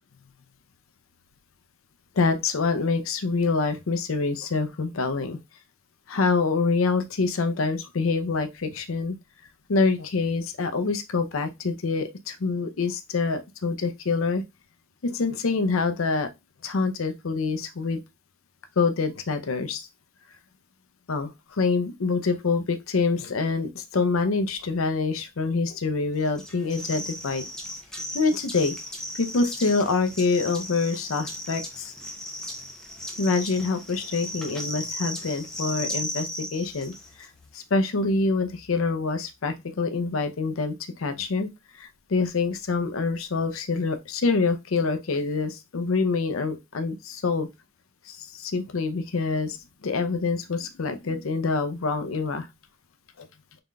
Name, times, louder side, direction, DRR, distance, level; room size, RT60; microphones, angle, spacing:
voice 1, 2.2-5.4 6.1-9.2 9.7-14.4 15.0-16.3 16.6-18.0 18.8-19.9 21.1-27.4 28.1-28.7 29.1-31.9 33.2-41.5 41.8-47.5 48.1-52.5 53.2-53.3, left 4 dB, 80° left, 0.6 m, -26 dB
sound 1, 26.4-37.3, equal, 5° left, 0.7 m, -36 dB
3.8 x 3.7 x 2.3 m
head